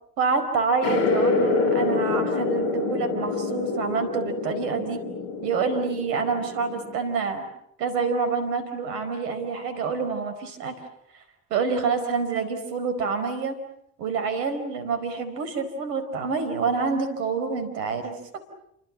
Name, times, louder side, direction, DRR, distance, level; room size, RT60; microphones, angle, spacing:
voice 1, 0.2-5.1 5.4-7.5 7.8-10.8 11.5-13.6 14.0-18.2, right 5 dB, 85° right, 9 dB, 4.8 m, -27 dB
sound 1, 0.8-7.0, left 4 dB, 75° left, 4.8 m, -26 dB
29.5 x 25.0 x 7.4 m, 0.75 s
hypercardioid pair, 55°, 47 cm